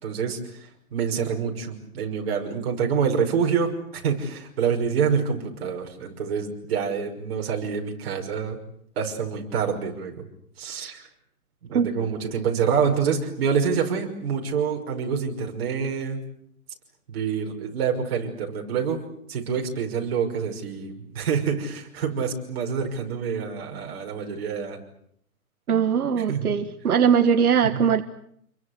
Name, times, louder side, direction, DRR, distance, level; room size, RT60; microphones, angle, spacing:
voice 1, 0.0-8.6 9.0-10.1 10.6-11.0 11.6-16.2 17.1-19.0 19.3-24.8 26.2-26.5, right 6 dB, 45° right, 2 dB, 6.0 m, -27 dB
voice 2, 25.7-28.0, right 7 dB, 80° right, 9 dB, 1.6 m, -20 dB
28.5 x 23.0 x 8.2 m, 0.69 s
hypercardioid pair, 165°, 44 cm